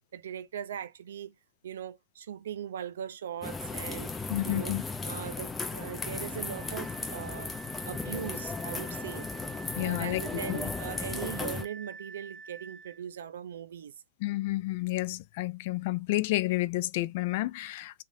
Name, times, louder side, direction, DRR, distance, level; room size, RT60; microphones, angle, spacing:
voice 1, 0.1-1.3 1.6-4.1 4.4-4.8 5.0-7.5 7.8-9.3 9.7-13.9, right 9 dB, 90° right, 0.5 m, -40 dB
sound 1, 3.4-11.7, left 3 dB, 10° left, 0.6 m, -36 dB
voice 2, 4.3-4.8 9.8-10.2 10.5-10.6 14.2-18.0, left 18 dB, 55° left, 0.4 m, -30 dB
Wind instrument woodwind instrument, 6.0-13.0, right 4 dB, 20° right, 1.1 m, -48 dB
3.2 x 2.4 x 2.6 m
supercardioid pair, 140°, 0 cm